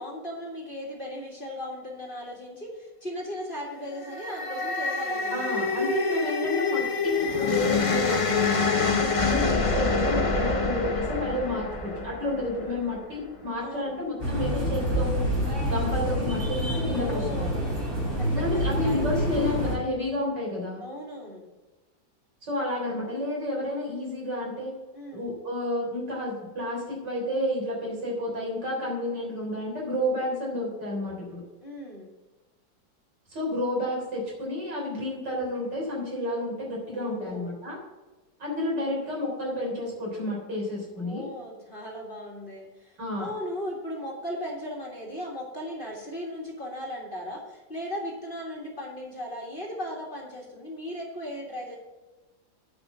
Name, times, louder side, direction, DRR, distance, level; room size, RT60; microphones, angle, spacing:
voice 1, 0.0-5.6 13.6-13.9 16.9-17.8 18.2-19.4 20.8-21.5 24.9-25.3 31.6-32.1 36.9-37.5 40.9-51.8, equal, 25° left, -2 dB, 2.0 m, -37 dB
sound 1, 3.9-13.2, left 4 dB, 50° left, 0.4 m, -26 dB
voice 2, 5.3-8.6 9.0-15.2 15.6-17.6 18.3-20.8 22.4-24.7 25.1-31.4 33.3-37.8 38.4-41.3 43.0-43.3, left 1 dB, 65° right, -2 dB, 4.4 m, -30 dB
sound 2, 14.2-19.8, equal, 35° right, 3.8 m, -27 dB
9.5 x 5.6 x 7.9 m, 1.2 s
omnidirectional pair, 2.1 m